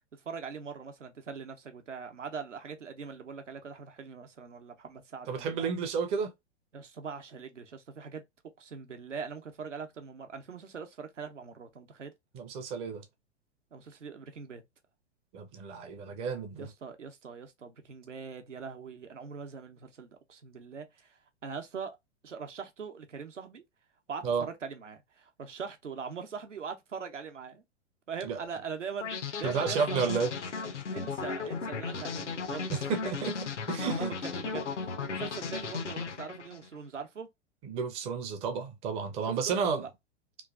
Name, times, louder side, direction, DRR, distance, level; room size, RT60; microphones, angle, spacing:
voice 1, 0.2-5.7 6.7-8.2 8.6-12.1 13.7-14.6 16.6-22.0 22.2-23.6 24.1-27.6 28.1-29.1 29.4-30.0 30.9-32.7 33.8-37.3 39.2-39.9, right 6 dB, 80° right, 0.7 m, -42 dB
voice 2, 5.3-6.3 12.3-13.0 15.3-16.7 24.2-24.5 28.2-28.4 29.4-30.3 32.7-34.1 37.6-39.8, right 6 dB, 20° right, 0.4 m, -31 dB
sound 1, 29.0-36.7, left 5 dB, 80° left, 0.6 m, -35 dB
3.1 x 2.3 x 2.3 m
figure-of-eight pair, 105°, 36 cm